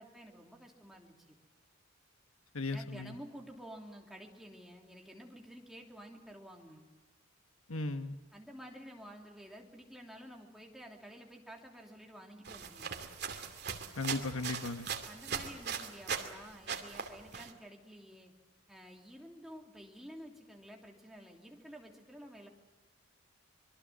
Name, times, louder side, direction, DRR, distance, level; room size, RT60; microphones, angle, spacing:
voice 1, 0.0-1.3 2.7-6.8 8.3-13.0 15.1-18.3 18.7-22.5, equal, ahead, 0 dB, 3.2 m, -51 dB
voice 2, 2.5-3.1 7.7-8.2 14.0-14.9, left 3 dB, 80° left, 8 dB, 1.4 m, -36 dB
sound 1, 12.4-16.3 16.7-17.5, right 7 dB, 50° right, 2.5 m, -40 dB
25.5 x 23.0 x 7.6 m, 1.3 s
head